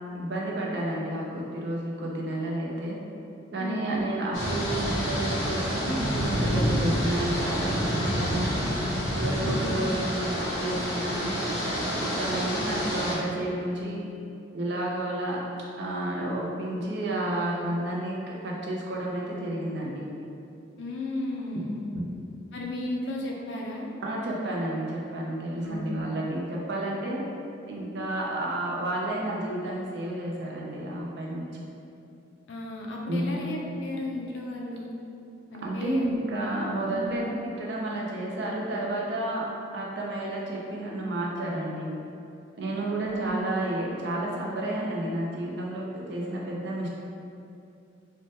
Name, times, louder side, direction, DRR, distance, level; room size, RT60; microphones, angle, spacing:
voice 1, 0.1-3.0 3.5-8.6 9.1-11.5 11.9-14.0 14.5-15.4 15.8-20.1 21.9-22.1 24.0-27.2 27.7-31.7 33.1-33.4 35.6-39.4 39.7-41.9 42.6-46.9, right 1 dB, 60° right, -3 dB, 0.5 m, -31 dB
voice 2, 3.6-4.0 9.4-9.9 20.8-21.9 22.5-23.9 25.5-26.1 32.5-34.9 35.5-36.2 36.9-37.2 43.0-43.4, left 1 dB, 65° left, -2 dB, 0.4 m, -34 dB
sound 1, 4.3-13.2, equal, 85° left, 0.8 m, -28 dB
3.2 x 2.1 x 2.7 m, 2.6 s
head